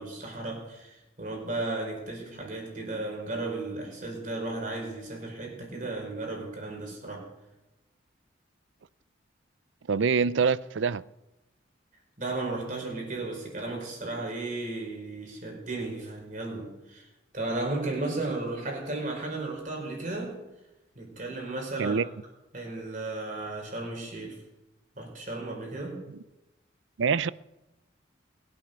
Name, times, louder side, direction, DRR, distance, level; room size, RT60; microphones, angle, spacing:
voice 1, 0.0-7.3 12.2-17.1 17.3-20.4 20.9-22.0 22.5-24.4 25.0-26.0, right 2 dB, 40° right, 0 dB, 4.9 m, -34 dB
voice 2, 9.9-11.0 21.8-22.0 27.0-27.3, right 5 dB, 75° right, 19 dB, 0.5 m, -25 dB
21.5 x 9.1 x 6.8 m, 0.98 s
head